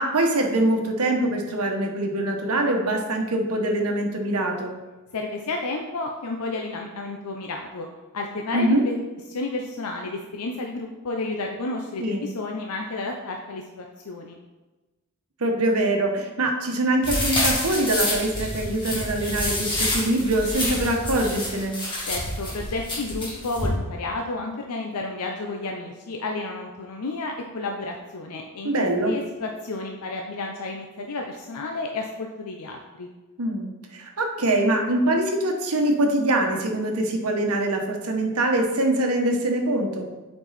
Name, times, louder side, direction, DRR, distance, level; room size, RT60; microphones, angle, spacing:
voice 1, 0.0-4.7 8.5-8.8 12.0-12.2 15.4-21.7 28.6-29.1 33.4-40.1, right 1 dB, 75° right, 2 dB, 1.1 m, -23 dB
voice 2, 5.1-7.9 8.1-9.0 9.3-14.4 22.0-28.7 29.1-33.1, left 2 dB, 85° left, 2 dB, 0.6 m, -31 dB
sound 1, 17.0-23.7, left 1 dB, 20° left, 2.2 m, -28 dB
8.0 x 4.6 x 4.1 m, 1.2 s
head